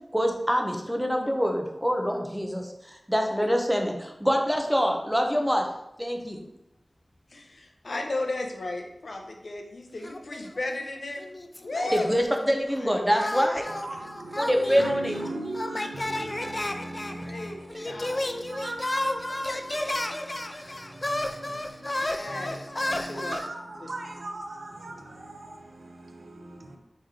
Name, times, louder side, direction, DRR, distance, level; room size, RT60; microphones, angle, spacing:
voice 1, 0.1-5.7 6.0-6.4 11.7-13.6 14.4-15.1, equal, 5° right, 3 dB, 0.7 m, -25 dB
voice 2, 7.3-11.3 11.6-12.1 12.7-12.9 13.2-13.6 17.2-18.3 22.0-23.4, left 2 dB, 75° left, 2 dB, 0.7 m, -35 dB
sound 1, 10.0-10.9 11.2-12.5 13.1-23.5, left 1 dB, 30° left, 0.4 m, -32 dB
voice 3, 13.7-26.8, right 2 dB, 75° right, 3 dB, 0.6 m, -40 dB
4.2 x 3.2 x 3.7 m, 0.85 s
wide cardioid pair, 70°, 0 cm